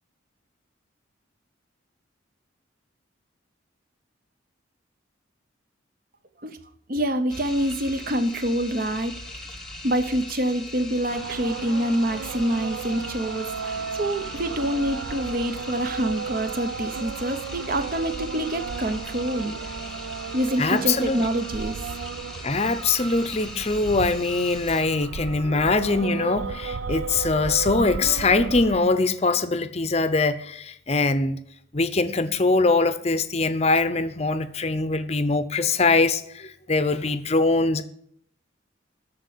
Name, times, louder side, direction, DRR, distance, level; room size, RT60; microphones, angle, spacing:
voice 1, 6.9-9.2 9.8-19.6 20.3-21.8, right 1 dB, 45° right, 0.9 m, -26 dB
sound 1, 7.3-24.8, left 2 dB, ahead, 1.1 m, -40 dB
sound 2, 11.1-28.8, right 5 dB, 70° right, 0.5 m, -34 dB
voice 2, 20.6-21.2 22.4-31.4 31.7-37.8, left 3 dB, 30° left, 0.7 m, -22 dB
13.0 x 4.4 x 8.3 m
head